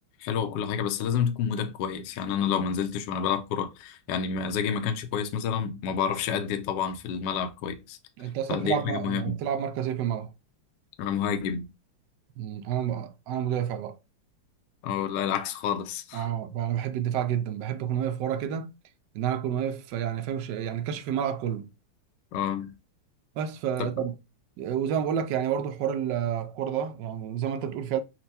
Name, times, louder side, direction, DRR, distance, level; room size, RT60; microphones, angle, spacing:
voice 1, 0.2-8.0 8.5-9.4 11.0-11.6 14.8-16.3 22.3-22.7, left 7 dB, 70° left, 1.1 m, -29 dB
voice 2, 8.2-10.3 12.4-14.0 16.1-18.7 19.1-21.7 23.4-24.1 24.6-28.0, right 9 dB, 75° right, 1.1 m, -29 dB
4.4 x 2.2 x 4.0 m
omnidirectional pair, 2.3 m